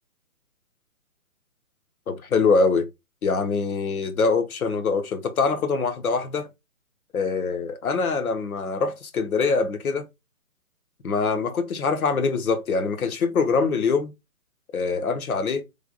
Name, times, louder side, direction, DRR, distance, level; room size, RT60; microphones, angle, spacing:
voice 1, 2.1-2.9 3.2-6.5 7.1-10.0 11.0-14.1 14.7-15.6, left 4 dB, 70° left, 1.0 m, -24 dB
3.4 x 2.4 x 3.8 m
hypercardioid pair, 150°, 44 cm